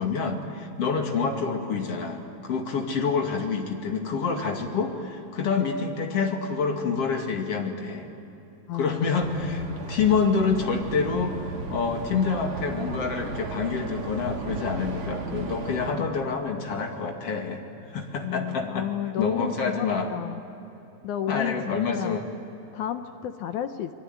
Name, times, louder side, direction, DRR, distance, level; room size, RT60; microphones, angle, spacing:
voice 1, 0.0-8.1 8.7-9.6 9.9-11.4 11.7-17.6 17.9-18.9 19.2-20.1 21.3-22.2, left 5 dB, 45° left, 3 dB, 3.1 m, -27 dB
voice 2, 8.7-9.9 18.2-20.4 21.0-22.2 22.7-23.9, left 10 dB, 70° left, 8 dB, 2.1 m, -32 dB
sound 1, 9.1-16.0, right 4 dB, 45° right, 2.3 m, -35 dB
29.0 x 21.5 x 9.4 m, 3.0 s
omnidirectional pair, 4.0 m